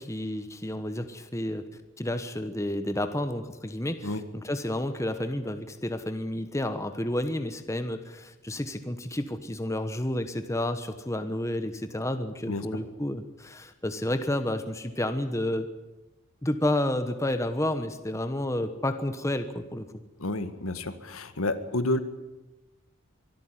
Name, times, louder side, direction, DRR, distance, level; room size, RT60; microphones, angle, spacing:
voice 1, 0.0-1.6 2.0-15.7 16.4-19.9, left 1 dB, 15° left, 9 dB, 1.2 m, -30 dB
voice 2, 20.2-22.0, left 2 dB, 90° left, 11 dB, 1.8 m, -30 dB
24.0 x 13.5 x 10.0 m, 1.1 s
head